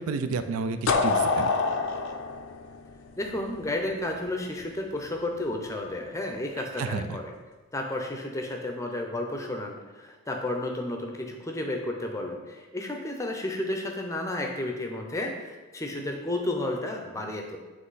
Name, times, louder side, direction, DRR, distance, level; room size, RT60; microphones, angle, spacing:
voice 1, 0.0-1.5 6.6-7.2, right 4 dB, 75° right, 10 dB, 0.4 m, -31 dB
sound 1, 0.9-3.7, left 4 dB, 70° left, 0.5 m, -26 dB
voice 2, 3.2-7.3 7.7-17.6, left 1 dB, 15° left, 2 dB, 0.5 m, -32 dB
7.4 x 3.2 x 4.0 m, 1.2 s
head